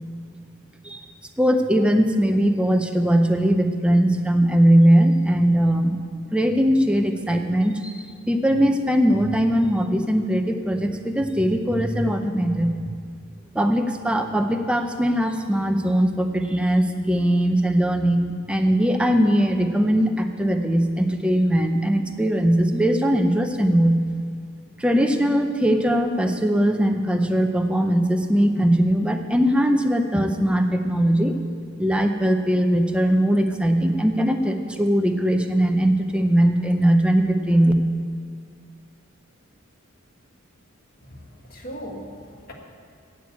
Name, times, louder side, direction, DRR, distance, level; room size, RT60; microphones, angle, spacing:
voice 1, 1.4-6.0 6.3-12.9 13.5-24.0 24.8-31.4 31.8-37.7, equal, 5° right, 5 dB, 0.6 m, -20 dB
voice 2, 41.0-42.5, equal, 45° left, 0 dB, 1.6 m, -39 dB
9.3 x 7.9 x 8.3 m, 2.2 s
head